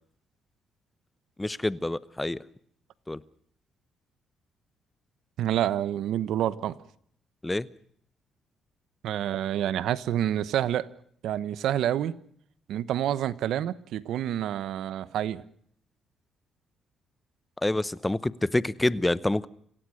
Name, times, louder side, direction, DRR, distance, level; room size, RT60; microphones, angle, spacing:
voice 1, 1.4-2.4 3.1-3.2 7.4-7.7 17.6-19.5, left 2 dB, 10° left, 18 dB, 0.8 m, -27 dB
voice 2, 5.4-6.8 9.0-10.9 11.2-12.1 12.7-15.4, right 11 dB, 80° right, 17 dB, 1.0 m, -28 dB
26.5 x 16.5 x 6.4 m, 0.64 s
cardioid pair, 90°, 0 cm